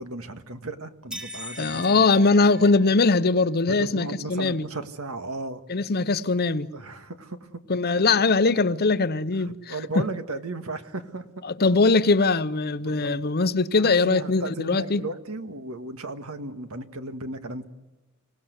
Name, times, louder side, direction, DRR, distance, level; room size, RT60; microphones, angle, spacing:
voice 1, 0.0-2.1 3.7-5.6 6.7-8.2 9.4-11.4 12.8-13.1 13.8-17.7, right 2 dB, 75° right, 1.7 m, -35 dB
sound 1, 1.1-3.3, equal, 5° right, 1.7 m, -40 dB
voice 2, 1.6-4.6 5.7-6.7 7.7-9.7 11.4-15.0, left 3 dB, 45° left, 0.8 m, -21 dB
26.0 x 17.5 x 8.1 m
head